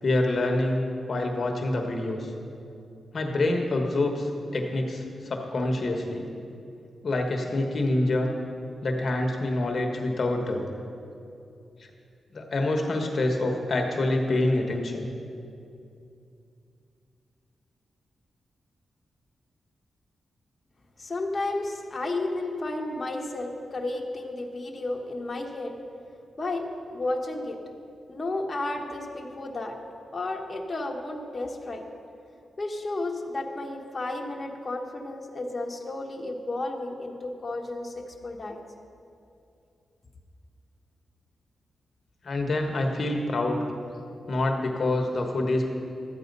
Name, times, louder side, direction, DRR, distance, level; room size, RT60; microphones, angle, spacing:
voice 1, 0.0-0.8 1.1-2.3 3.1-6.3 7.0-8.3 8.8-10.7 12.3-15.1 42.2-43.6 44.3-45.7, left 2 dB, 55° left, 2 dB, 1.2 m, -26 dB
voice 2, 21.0-25.7 26.4-27.6 28.1-29.8 30.1-31.8 32.6-38.6, left 2 dB, 35° left, 0 dB, 1.3 m, -32 dB
13.0 x 9.3 x 5.4 m, 2.6 s
cardioid pair, 75°, 0 cm